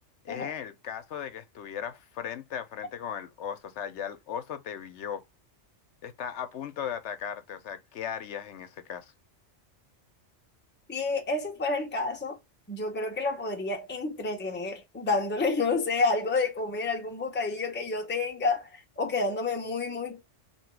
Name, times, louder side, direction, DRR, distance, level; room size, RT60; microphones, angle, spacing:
voice 1, 0.2-5.2 6.0-9.1, left 8 dB, 70° left, 0.9 m, -37 dB
voice 2, 10.9-12.4 12.7-20.2, left 3 dB, 10° left, 0.6 m, -29 dB
2.9 x 2.9 x 4.5 m
omnidirectional pair, 1.2 m